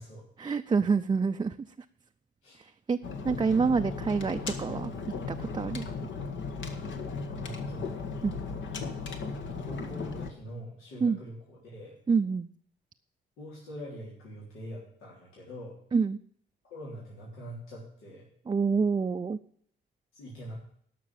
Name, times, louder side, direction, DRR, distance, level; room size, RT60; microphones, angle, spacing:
voice 1, 0.4-1.5 2.6-3.0 3.2-4.9 5.3-5.9 8.2-8.4 11.0-11.2 12.1-12.5 15.9-16.2 18.5-19.4, right 5 dB, 25° right, 6 dB, 0.5 m, -27 dB
sound 1, 3.0-10.3, left 4 dB, 70° left, 1.7 m, -36 dB
voice 2, 7.4-8.0 9.5-11.9 13.4-15.7 16.6-18.3 20.1-20.6, equal, 85° left, -5 dB, 3.7 m, -43 dB
12.5 x 6.0 x 8.9 m, 0.64 s
cardioid pair, 90°, 20 cm